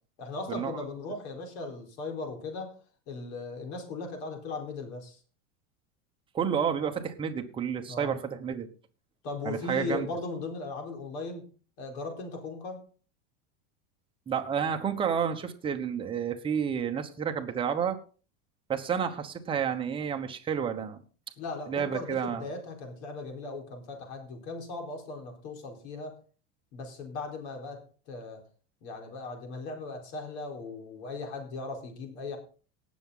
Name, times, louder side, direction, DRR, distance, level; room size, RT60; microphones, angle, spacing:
voice 1, 0.2-2.8 3.1-5.2 7.9-8.1 9.2-11.5 11.8-12.8 21.4-26.2 26.7-27.8 28.1-28.4 28.8-32.4, left 3 dB, 60° left, 3 dB, 4.4 m, -38 dB
voice 2, 6.3-8.7 9.4-10.1 14.3-18.0 18.7-21.0 21.7-22.5, right 7 dB, 15° right, 4 dB, 1.1 m, -30 dB
18.5 x 7.2 x 3.9 m, 0.39 s
supercardioid pair, 165°, 36 cm